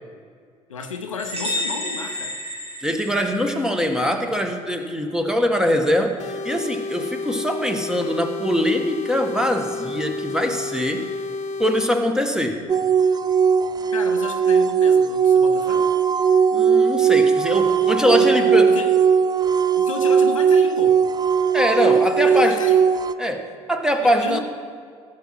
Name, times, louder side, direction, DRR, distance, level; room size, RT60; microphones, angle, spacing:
voice 1, 0.7-2.4 13.9-15.9 18.2-18.9 19.7-21.0 22.2-22.9 24.0-24.4, left 5 dB, 90° left, 6 dB, 0.7 m, -32 dB
sound 1, 1.2-3.8, left 1 dB, 40° right, 2.3 m, -30 dB
voice 2, 2.8-11.1 11.6-12.6 16.5-18.7 21.5-22.6 23.2-24.4, equal, 5° right, 4 dB, 1.5 m, -22 dB
sound 2, 6.2-11.9, left 3 dB, 45° left, 0.8 m, -31 dB
sound 3, 12.7-23.1, right 6 dB, 25° right, 0.5 m, -18 dB
15.5 x 6.3 x 5.9 m, 2.1 s
hypercardioid pair, 60°, 16 cm